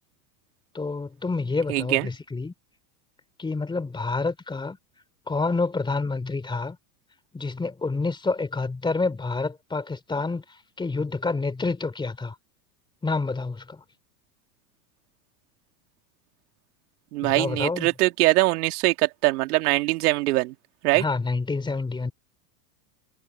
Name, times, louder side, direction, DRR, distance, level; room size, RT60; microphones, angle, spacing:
voice 1, 0.7-2.5 3.4-4.8 5.3-6.8 7.3-10.4 10.8-12.3 13.0-13.8 17.2-17.9 20.9-22.1, left 3 dB, 10° left, 3.1 m, -28 dB
voice 2, 1.7-2.1 17.1-20.5 20.8-21.0, right 20 dB, 80° right, 2.3 m, -22 dB
supercardioid pair, 145°, 45 cm